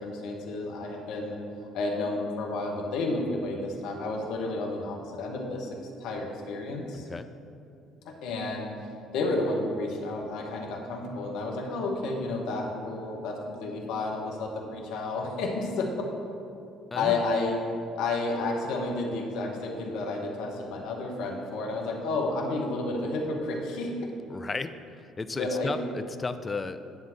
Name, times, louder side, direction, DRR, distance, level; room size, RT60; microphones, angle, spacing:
voice 1, 0.0-1.4 1.7-7.1 8.0-8.7 9.1-16.1 16.9-17.6 18.0-23.9 25.3-25.7, left 2 dB, 70° left, 0 dB, 1.3 m, -31 dB
voice 2, 6.9-7.3 16.9-17.2 24.3-26.8, left 4 dB, 25° left, 10 dB, 0.5 m, -34 dB
10.5 x 3.7 x 7.4 m, 2.6 s
hypercardioid pair, 55°, 0 cm